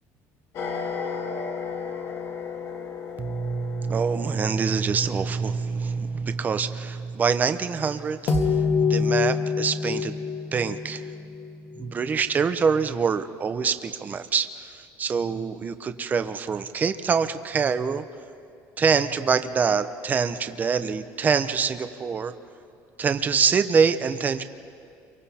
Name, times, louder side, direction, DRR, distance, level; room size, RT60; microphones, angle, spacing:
sound 1, 0.5-4.8 8.3-12.2, left 5 dB, 50° left, 2.0 m, -28 dB
voice 1, 3.2-8.3 8.8-10.1 10.5-11.0 11.8-18.0 18.8-22.3 23.0-24.4, right 6 dB, 25° right, 10 dB, 0.7 m, -25 dB
30.0 x 24.5 x 4.3 m, 2.4 s
cardioid pair, 145°, 7 cm